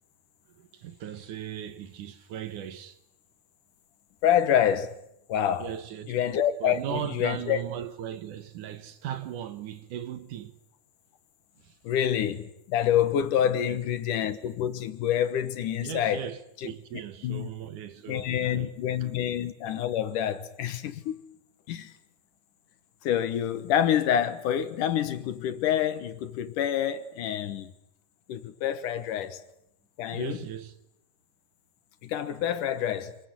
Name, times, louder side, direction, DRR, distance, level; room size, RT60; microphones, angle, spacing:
voice 1, 0.5-3.0 5.6-6.1 6.6-10.6 11.6-11.7 13.4-13.8 15.8-18.8 30.1-30.8, right 10 dB, 65° right, 2.6 m, -38 dB
voice 2, 4.2-5.0 5.3-5.7 6.1-7.6 11.8-16.3 16.6-16.7 17.2-17.5 18.1-21.2 21.7-21.9 23.0-27.7 28.3-29.4 30.0-30.4 32.0-33.2, left 10 dB, 65° left, 2.6 m, -27 dB
28.0 x 21.5 x 9.5 m
omnidirectional pair, 4.3 m